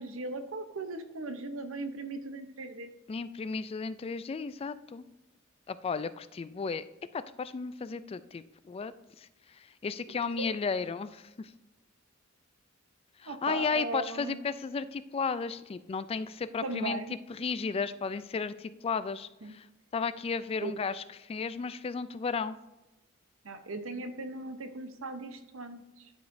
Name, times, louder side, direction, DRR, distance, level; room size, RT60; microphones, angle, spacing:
voice 1, 0.0-2.9 10.4-10.5 13.3-14.4 16.6-17.1 19.4-19.5 20.6-20.7 23.4-26.1, right 3 dB, 75° right, 8 dB, 0.8 m, -38 dB
voice 2, 3.1-5.0 5.7-6.8 7.1-11.5 13.2-17.0 17.3-19.7 19.9-22.6, left 5 dB, 30° left, 14 dB, 0.3 m, -34 dB
11.5 x 4.9 x 2.7 m, 1.0 s
head